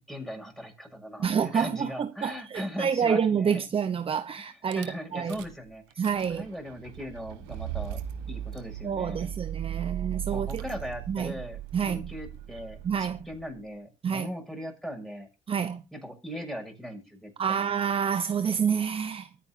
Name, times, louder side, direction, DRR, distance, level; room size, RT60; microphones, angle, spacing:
voice 1, 0.1-3.7 4.4-8.0 8.3-9.3 10.3-15.3 15.9-17.7, equal, ahead, 6.8 m, -39 dB
voice 2, 1.2-5.3 6.0-6.4 8.8-10.6 11.1-11.3 11.7-12.1 12.8-13.3 14.0-14.3 15.5-15.8 17.4-19.3, right 7 dB, 30° right, 1.0 m, -28 dB
Rattle / Car / Engine starting, 4.7-4.9 5.3-5.6 5.9-13.6, right 11 dB, 80° right, 1.5 m, -38 dB
23.5 x 8.9 x 2.9 m
supercardioid pair, 85°, 17 cm